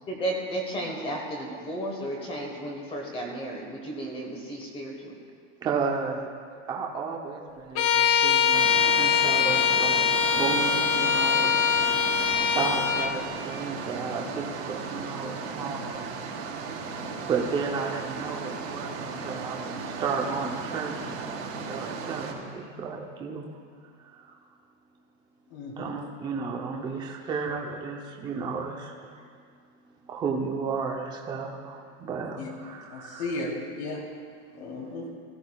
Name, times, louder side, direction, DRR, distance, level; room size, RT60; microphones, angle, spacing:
voice 1, 0.1-5.1, right 1 dB, 15° left, 0 dB, 1.2 m, -33 dB
voice 2, 5.6-6.3 6.7-10.1 10.3-16.0 17.3-23.4 24.0-24.3 25.8-29.1 30.1-33.5, right 5 dB, 10° right, 0 dB, 0.6 m, -33 dB
Bowed string instrument, 7.8-13.2, left 7 dB, 35° left, 0.5 m, -23 dB
sound 1, 8.5-22.3, right 4 dB, 90° right, 3.0 m, -36 dB
voice 3, 25.5-25.9 32.4-32.5 32.9-34.0 34.6-35.0, left 2 dB, 60° left, -1 dB, 3.2 m, -34 dB
16.0 x 14.0 x 2.3 m, 2.1 s
supercardioid pair, 170°, 37 cm